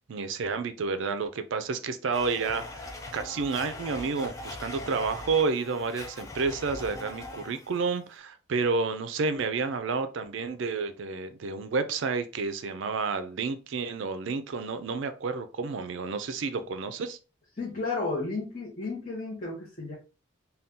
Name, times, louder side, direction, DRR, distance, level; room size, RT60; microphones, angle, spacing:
voice 1, 0.1-17.2, right 4 dB, 60° right, 0.4 m, -30 dB
Domestic sounds home sounds, 2.1-7.8, left 2 dB, 15° left, 0.4 m, -41 dB
voice 2, 17.5-20.0, left 3 dB, 35° left, 0.8 m, -33 dB
2.7 x 2.3 x 3.5 m
head